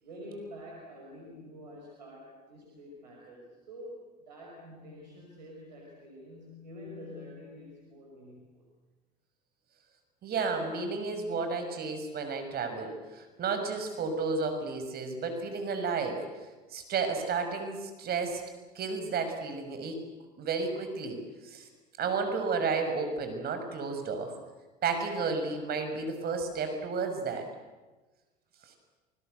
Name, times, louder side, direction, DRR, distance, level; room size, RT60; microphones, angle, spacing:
voice 1, 0.0-8.7, left 1 dB, 90° right, -2 dB, 5.9 m, -47 dB
voice 2, 10.2-16.2 16.7-18.4 18.7-20.0 20.4-21.7 22.0-24.3 24.8-27.5, right 4 dB, 45° right, 6 dB, 6.3 m, -32 dB
29.5 x 20.5 x 8.1 m, 1.2 s
hypercardioid pair, 75°, 21 cm